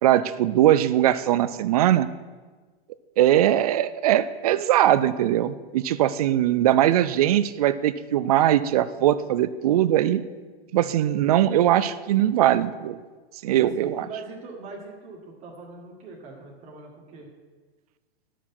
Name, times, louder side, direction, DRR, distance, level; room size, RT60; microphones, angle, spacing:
voice 1, 0.0-2.1 3.2-10.2 10.7-13.0 13.4-14.1, right 12 dB, 40° right, 14 dB, 0.4 m, -21 dB
voice 2, 10.6-11.0 13.5-17.3, right 3 dB, 20° right, -2 dB, 2.0 m, -42 dB
11.5 x 6.1 x 6.0 m, 1.4 s
hypercardioid pair, 155°, 32 cm